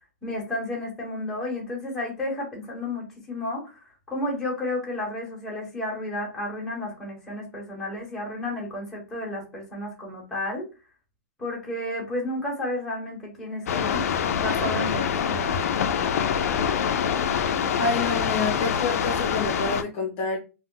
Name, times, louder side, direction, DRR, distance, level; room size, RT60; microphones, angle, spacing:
voice 1, 0.2-10.6 11.4-15.6, left 1 dB, 5° left, -3 dB, 1.0 m, -32 dB
sound 1, 13.7-19.8, left 7 dB, 80° left, 0.4 m, -25 dB
voice 2, 17.8-20.4, left 3 dB, 35° left, -1 dB, 0.6 m, -28 dB
2.3 x 2.0 x 3.7 m, 0.31 s
supercardioid pair, 160°, 8 cm